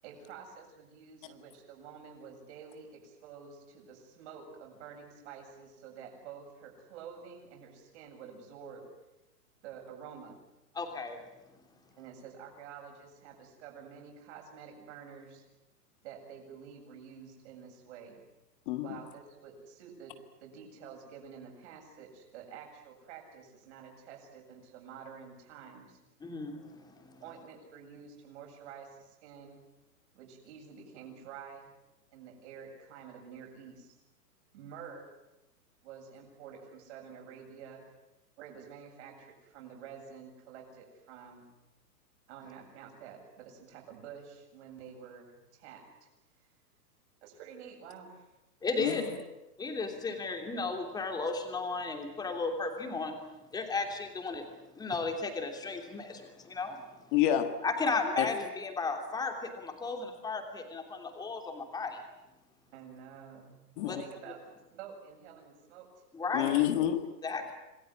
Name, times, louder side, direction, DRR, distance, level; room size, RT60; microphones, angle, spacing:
voice 1, 0.0-8.9 9.6-10.4 12.0-15.4 16.0-18.2 18.8-26.0 27.2-29.6 30.1-31.7 32.1-33.9 34.5-35.1 35.8-37.8 38.4-41.5 42.3-46.1 46.4-46.5 47.2-48.3 48.8-49.1 62.7-64.4 64.7-66.0, right 7 dB, 45° right, 7.8 m, -49 dB
voice 2, 10.7-11.2 26.2-27.2 48.6-49.0 49.6-53.1 53.5-54.5 54.7-57.1 57.6-62.0 63.9-64.0 66.1-66.6 67.2-67.5, left 4 dB, 10° left, 3.1 m, -34 dB
voice 3, 18.7-19.0 48.8-48.9 57.1-57.6 58.2-58.3 63.8-64.0 66.3-67.1, left 12 dB, 30° left, 1.5 m, -28 dB
27.0 x 20.0 x 9.8 m
hypercardioid pair, 160°, 49 cm